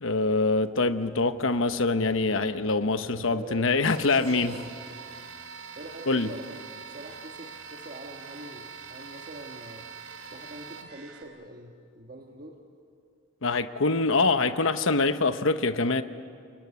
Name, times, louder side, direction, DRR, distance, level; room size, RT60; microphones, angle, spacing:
voice 1, 0.0-4.5 6.1-6.3 13.4-16.0, left 3 dB, 70° left, 10 dB, 1.0 m, -24 dB
voice 2, 3.3-4.6 5.7-6.6 6.9-9.9 10.3-12.6, right 2 dB, 40° right, 1 dB, 1.6 m, -43 dB
sound 1, 3.9-11.2, right 5 dB, 80° right, 3.1 m, -44 dB
30.0 x 21.0 x 8.5 m, 2.3 s
head